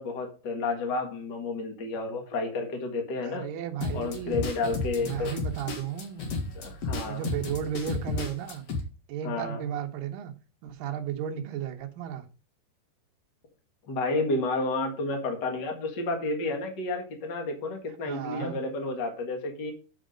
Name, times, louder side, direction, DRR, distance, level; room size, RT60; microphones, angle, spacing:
voice 1, 0.0-3.5 3.9-5.3 6.5-7.3 9.2-9.6 13.9-19.7, left 3 dB, 65° left, 1.0 m, -31 dB
voice 2, 3.2-4.4 5.0-6.3 7.1-8.7 9.1-10.3 10.6-12.3 15.5-15.6 18.0-18.6, right 9 dB, 70° right, 2.4 m, -34 dB
sound 1, 3.8-8.8, left 3 dB, 50° left, 2.2 m, -33 dB
8.3 x 6.3 x 5.2 m
omnidirectional pair, 4.9 m